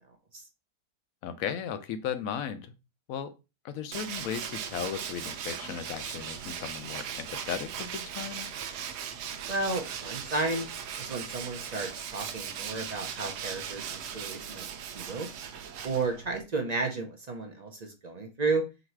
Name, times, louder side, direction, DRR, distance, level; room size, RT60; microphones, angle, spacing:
voice 1, 1.2-2.7 3.1-3.3 3.6-8.5, left 8 dB, 70° left, 10 dB, 0.9 m, -36 dB
Tools, 3.9-16.4, right 8 dB, 90° right, 1.1 m, -38 dB
voice 2, 9.5-10.7 11.0-14.7 14.9-15.3 15.8-18.6, right 3 dB, 45° right, 3 dB, 0.5 m, -32 dB
3.9 x 2.6 x 4.4 m, 0.28 s
omnidirectional pair, 1.6 m